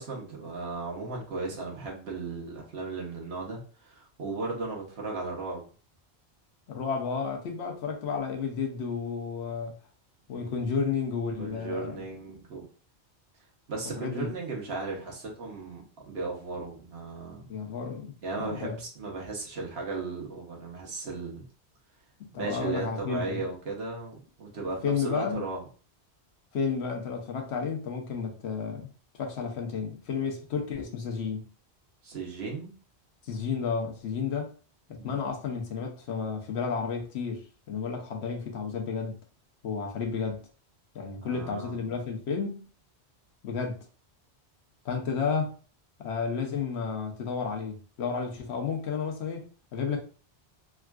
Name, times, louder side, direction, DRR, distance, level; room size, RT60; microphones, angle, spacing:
voice 1, 0.0-5.6 10.3-10.8 11.4-12.7 13.7-17.5 18.2-21.4 22.4-25.7 32.0-32.7 35.0-35.2 41.2-41.9, right 3 dB, 70° right, 1.2 m, -36 dB
voice 2, 6.7-9.7 10.3-12.0 14.0-14.3 17.5-18.8 22.2-23.5 24.8-25.4 26.5-28.9 29.2-31.5 33.3-34.5 34.9-39.2 39.6-40.4 40.9-42.7 43.4-43.8 44.8-45.5 46.0-50.0, left 5 dB, 75° left, 1.0 m, -32 dB
3.6 x 2.4 x 2.2 m
omnidirectional pair, 1.1 m